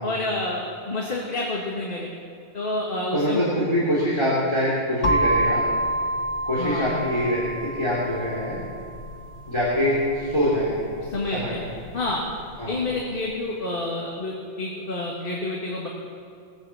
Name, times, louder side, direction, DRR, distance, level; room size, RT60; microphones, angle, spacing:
voice 1, 0.0-2.1 2.5-3.4 6.6-6.9 11.1-11.6 11.9-12.2 12.7-15.9, left 2 dB, 55° left, -3 dB, 1.8 m, -28 dB
voice 2, 3.1-5.6 6.5-8.6 9.5-10.8 11.3-11.7 12.6-12.7, equal, 25° left, -8 dB, 3.1 m, -24 dB
sound 1, 5.0-12.9, right 1 dB, 85° left, 1.5 m, -29 dB
20.0 x 9.0 x 7.1 m, 2.4 s
omnidirectional pair, 1.1 m